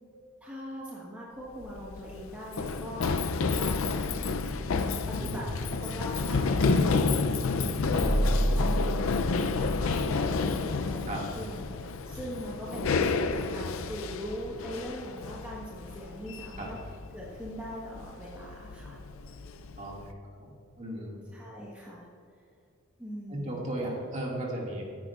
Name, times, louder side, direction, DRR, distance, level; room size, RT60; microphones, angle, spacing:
voice 1, 0.4-4.0 5.1-7.0 7.5-16.8 17.1-19.0 21.3-22.1 23.0-23.7, equal, 5° right, -6 dB, 1.2 m, -41 dB
Run, 1.5-20.1, left 4 dB, 75° left, 0.5 m, -30 dB
sound 1, 8.0-9.8, right 1 dB, 75° right, 1.5 m, -27 dB
voice 2, 19.8-20.1 20.4-20.5 20.8-21.2 23.3-24.8, right 1 dB, 35° right, -3 dB, 2.0 m, -35 dB
14.5 x 9.5 x 2.4 m, 2.5 s
head